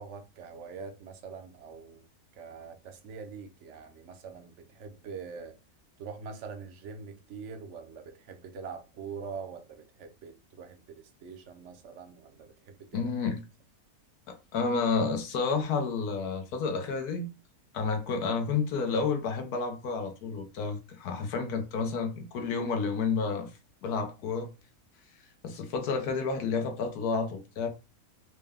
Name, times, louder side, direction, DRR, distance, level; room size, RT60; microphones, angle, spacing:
voice 1, 0.0-2.1 2.3-5.6 6.0-13.1, right 5 dB, 60° right, 0.9 m, -44 dB
voice 2, 12.9-13.4 14.3-17.3 17.7-23.5 23.8-24.5 25.4-27.7, left 4 dB, 80° left, 1.3 m, -30 dB
4.3 x 2.1 x 3.5 m
omnidirectional pair, 1.6 m